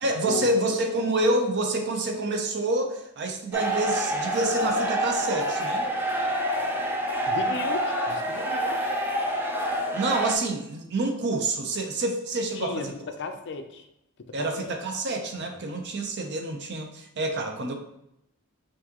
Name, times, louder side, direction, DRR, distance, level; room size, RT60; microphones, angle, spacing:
voice 1, 0.0-5.9 9.9-12.9 14.3-17.7, right 2 dB, 55° right, 4 dB, 0.6 m, -27 dB
sound 1, 3.5-10.3, equal, 10° right, 0.4 m, -27 dB
voice 2, 7.3-8.8 12.6-12.9 13.2-13.8 14.4-14.7 15.4-15.5, left 4 dB, 55° left, 7 dB, 0.4 m, -35 dB
6.0 x 2.6 x 2.9 m, 0.82 s
head